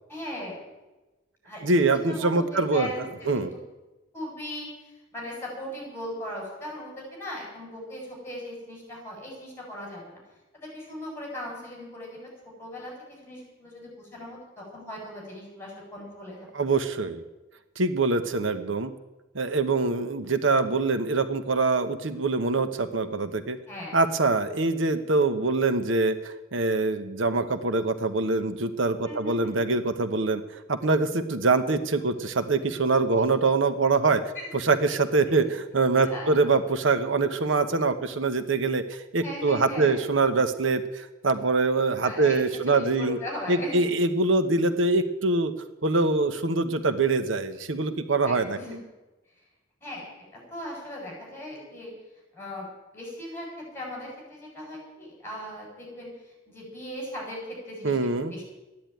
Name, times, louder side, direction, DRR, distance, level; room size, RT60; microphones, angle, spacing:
voice 1, 0.1-0.6 1.4-3.5 4.1-10.2 10.5-12.3 12.6-16.4 23.7-24.0 29.0-29.6 33.1-33.3 34.3-34.5 36.0-36.3 39.2-40.0 42.0-43.8 48.2-48.8 49.8-51.9 52.3-52.7 52.9-58.0 58.3-58.5, left 1 dB, 15° left, -2 dB, 7.4 m, -38 dB
voice 2, 1.6-2.9 3.3-3.5 16.5-17.2 17.8-18.9 19.3-23.6 23.9-30.4 30.7-34.3 34.7-43.2 43.5-45.5 45.8-48.6 57.8-58.3, right 3 dB, 80° right, 10 dB, 1.0 m, -24 dB
14.0 x 10.5 x 9.1 m, 1.1 s
head